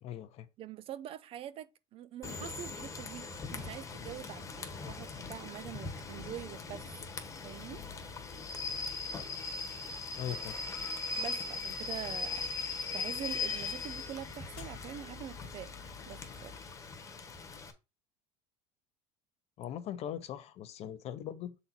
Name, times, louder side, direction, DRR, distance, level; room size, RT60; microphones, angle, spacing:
voice 1, 0.0-0.5 10.2-10.6 19.6-21.6, left 10 dB, 45° left, 0.7 m, -40 dB
voice 2, 0.6-6.8 7.4-7.8 11.2-12.4 12.9-15.7 16.1-16.6, right 11 dB, 40° right, 0.4 m, -44 dB
Rain / Train, 2.2-17.7, left 4 dB, 20° left, 1.2 m, -40 dB
sound 1, 7.4-16.7, left 7 dB, 75° left, 1.0 m, -53 dB
6.8 x 4.1 x 4.2 m
cardioid pair, 135°, 15 cm